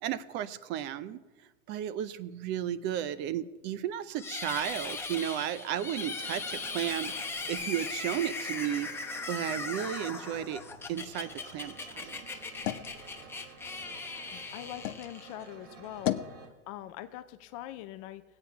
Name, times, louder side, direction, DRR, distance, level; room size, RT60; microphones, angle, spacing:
voice 1, 0.0-1.2 1.7-7.2 7.5-8.9 9.3-10.6 10.9-12.3, right 11 dB, 25° right, 15 dB, 0.6 m, -34 dB
sound 1, 4.2-15.5, left 4 dB, 5° left, 0.8 m, -39 dB
sound 2, 5.7-16.5, right 5 dB, 70° right, 2.6 m, -52 dB
sound 3, 11.3-15.1 15.5-16.4, left 12 dB, 65° left, 1.0 m, -38 dB
voice 2, 14.3-16.2 16.7-18.2, left 13 dB, 30° left, 11 dB, 0.4 m, -43 dB
18.5 x 8.8 x 5.7 m, 1.3 s
hypercardioid pair, 135°, 40 cm